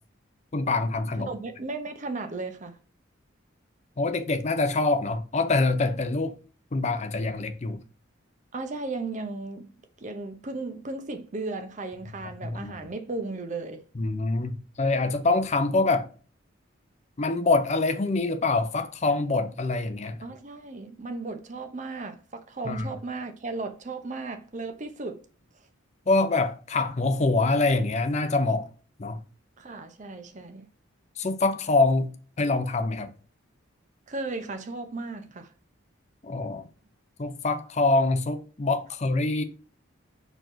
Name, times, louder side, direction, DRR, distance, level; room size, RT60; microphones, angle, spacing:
voice 1, 0.5-1.3 4.0-6.4 6.7-7.8 12.4-12.7 14.0-16.1 17.2-20.2 22.6-22.9 26.1-28.7 29.0-29.2 31.2-32.1 32.4-33.1 36.2-36.6 37.2-39.4, left 3 dB, 35° left, 0.5 m, -25 dB
voice 2, 1.3-2.8 8.5-13.8 20.2-25.2 29.6-30.7 34.1-35.5, right 3 dB, 35° right, 0.6 m, -35 dB
4.4 x 4.4 x 2.6 m
head